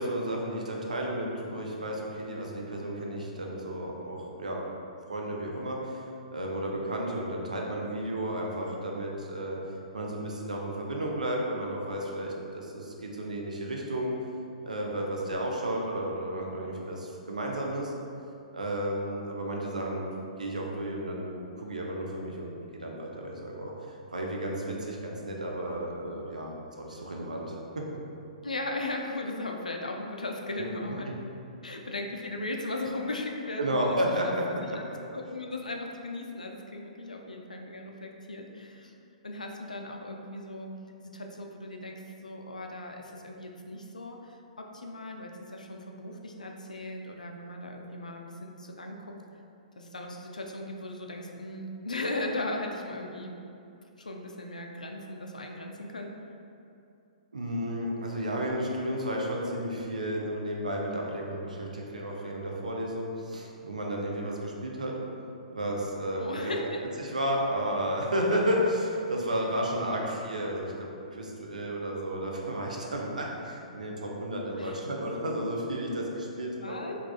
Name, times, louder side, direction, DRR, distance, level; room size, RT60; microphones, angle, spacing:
voice 1, 0.0-4.6 5.1-9.6 9.9-14.2 14.6-17.9 18.5-20.1 20.4-23.7 24.1-27.9 30.6-30.7 33.6-34.4 34.7-34.9 57.3-65.0 65.5-66.7 67.0-76.8, right 1 dB, 75° right, -1 dB, 0.4 m, -32 dB
voice 2, 28.4-31.1 31.6-34.9 35.1-38.9 39.2-40.7 41.0-49.2 49.7-53.4 54.0-56.1 65.1-65.2 66.2-66.8 74.5-74.8 76.6-77.0, left 2 dB, 80° left, 2 dB, 0.3 m, -37 dB
3.4 x 2.3 x 2.3 m, 2.6 s
figure-of-eight pair, 115°, 4 cm